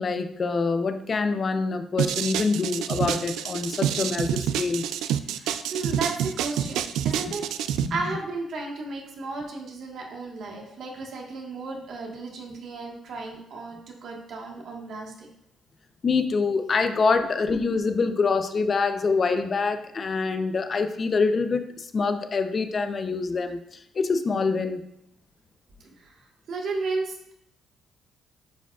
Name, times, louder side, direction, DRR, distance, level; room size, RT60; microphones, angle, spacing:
voice 1, 0.0-4.8 7.8-7.9 16.0-23.6 24.0-24.8, left 4 dB, 40° left, 7 dB, 0.6 m, -25 dB
sound 1, 2.0-7.9, right 10 dB, 90° right, 0.3 m, -27 dB
voice 2, 5.3-7.4 7.9-15.3 17.2-17.3 25.8-26.2 26.5-27.3, right 3 dB, 70° right, 0 dB, 1.4 m, -34 dB
9.1 x 4.9 x 2.4 m, 0.78 s
cardioid pair, 90°, 0 cm